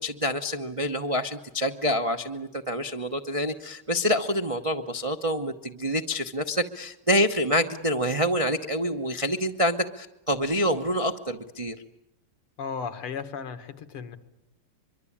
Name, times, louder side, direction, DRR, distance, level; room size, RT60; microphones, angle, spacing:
voice 1, 0.0-11.8, equal, 40° right, 5 dB, 0.4 m, -27 dB
voice 2, 12.6-14.2, left 6 dB, 80° left, 9 dB, 2.5 m, -35 dB
24.0 x 24.0 x 8.7 m, 0.86 s
omnidirectional pair, 2.4 m